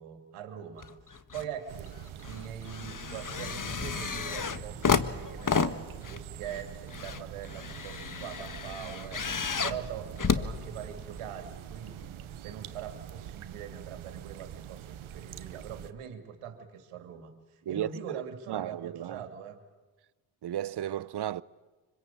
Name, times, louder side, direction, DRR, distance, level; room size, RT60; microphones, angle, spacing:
voice 1, 0.0-2.0 2.2-5.8 6.1-19.6, right 8 dB, 85° right, 3.0 m, -43 dB
sound 1, 0.8-1.5 1.9-11.2 12.0-12.1, left 6 dB, 40° left, 1.6 m, -32 dB
sound 2, 1.7-15.9, right 10 dB, 70° right, 1.4 m, -45 dB
sound 3, 3.6-6.9 8.9-12.2, right 3 dB, 25° right, 3.6 m, -52 dB
voice 2, 18.5-19.2 20.4-21.4, right 11 dB, 50° right, 0.9 m, -33 dB
26.0 x 25.0 x 8.8 m
supercardioid pair, 50°, 50 cm